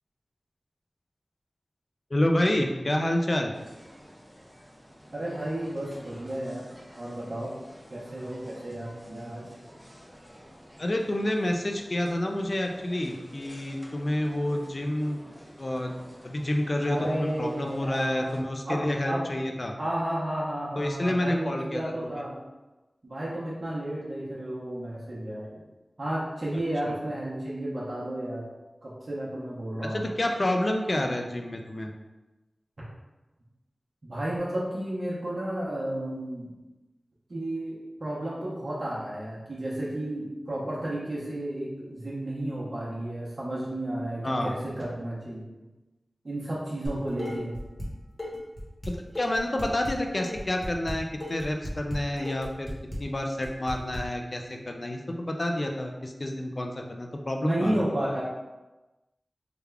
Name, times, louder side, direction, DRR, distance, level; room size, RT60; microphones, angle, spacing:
voice 1, 2.1-3.5 10.8-15.2 15.6-16.0 16.2-19.7 20.8-22.2 26.9-27.0 29.9-31.9 44.2-44.5 48.9-52.7 53.0-57.8, left 1 dB, 40° left, 3 dB, 0.3 m, -29 dB
sound 1, 3.5-18.4, equal, 5° left, 0.6 m, -50 dB
voice 2, 5.1-6.7 7.0-7.5 7.9-9.4 16.8-19.2 19.8-22.4 23.0-25.6 26.0-28.5 28.8-30.1 34.0-36.5 37.3-45.5 46.2-47.6 57.4-58.2, right 1 dB, 55° right, -7 dB, 0.8 m, -32 dB
Dishes pots and pans, 46.8-47.9 48.2-54.0, left 1 dB, 25° left, 1.0 m, -36 dB
3.4 x 2.3 x 3.3 m, 1.1 s
wide cardioid pair, 80°, 0 cm